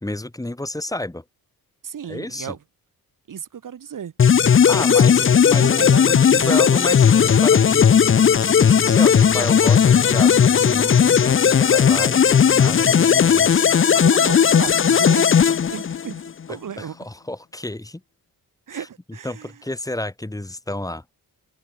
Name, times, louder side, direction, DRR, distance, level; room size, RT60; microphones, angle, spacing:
voice 1, 0.0-1.2 2.1-2.5 4.7-7.9 8.3-13.6 16.5-18.0 18.7-18.9 19.2-21.0, left 1 dB, 10° left, 1.5 m, -31 dB
voice 2, 1.8-2.6 3.3-4.1 4.9-5.1 5.6-6.7 14.0-15.4 15.7-16.2 16.5-17.0 18.7-19.5, right 8 dB, 60° right, 1.9 m, -33 dB
sound 1, 4.2-16.3, left 7 dB, 35° left, 0.6 m, -16 dB
cardioid pair, 90°, 36 cm